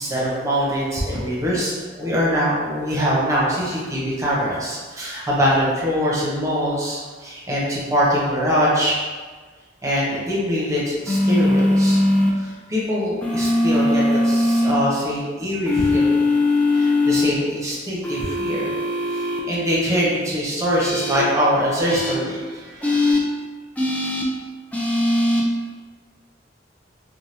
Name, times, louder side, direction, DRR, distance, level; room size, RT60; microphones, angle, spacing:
voice 1, 0.0-9.0 9.8-12.0 12.3-16.1 16.7-18.7 19.1-23.1, equal, 15° right, -6 dB, 0.7 m, -23 dB
sound 1, 11.1-12.3 13.2-14.7 15.7-17.3 18.0-19.4 20.8-21.2 21.9-22.1 22.8-23.2 23.8-24.2 24.7-25.4, left 1 dB, 10° left, 0.3 m, -20 dB
2.8 x 2.2 x 3.2 m, 1.4 s
head